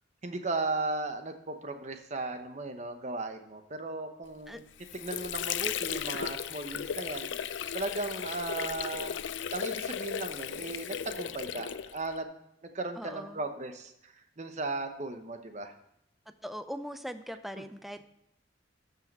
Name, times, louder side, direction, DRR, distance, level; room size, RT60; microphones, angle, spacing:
voice 1, 0.2-4.6 4.9-9.2 9.5-12.3 12.6-15.7 17.6-17.7, right 2 dB, 40° right, 7 dB, 0.9 m, -36 dB
Water / Sink (filling or washing), 4.5-12.2, left 8 dB, 75° left, 0.4 m, -36 dB
voice 2, 13.0-13.4 16.4-18.0, equal, ahead, 10 dB, 0.4 m, -40 dB
13.5 x 5.6 x 5.3 m, 0.79 s
head